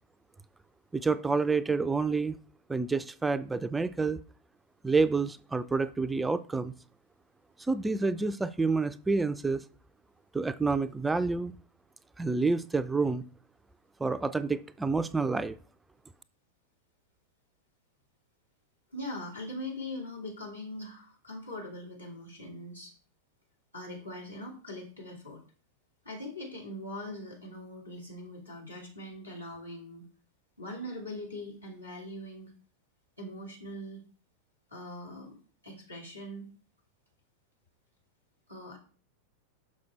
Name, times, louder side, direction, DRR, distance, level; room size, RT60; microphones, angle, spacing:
voice 1, 0.9-2.4 2.7-4.2 4.8-6.7 7.7-9.6 10.3-11.5 12.2-13.2 14.0-15.6, right 4 dB, 10° right, 0.3 m, -28 dB
voice 2, 18.9-22.9 23.7-25.4 26.0-30.0 30.6-32.5 33.2-34.0 34.7-35.3 35.6-36.5 38.5-38.8, left 1 dB, 85° left, 2.6 m, -41 dB
6.2 x 5.6 x 4.2 m
figure-of-eight pair, 90°, 0 cm